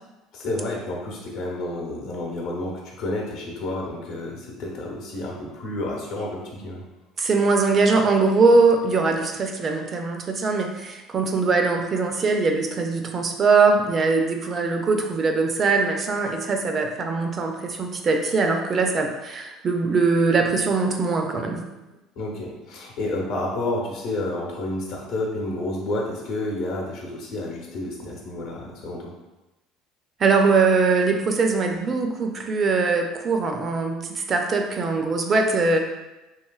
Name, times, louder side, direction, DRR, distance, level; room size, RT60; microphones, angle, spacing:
voice 1, 0.3-6.8 22.2-29.1, left 2 dB, 70° left, -2 dB, 0.8 m, -30 dB
voice 2, 7.2-21.6 30.2-35.8, right 4 dB, 35° right, 4 dB, 0.3 m, -21 dB
3.1 x 2.7 x 2.3 m, 1.0 s
supercardioid pair, 115°, 0 cm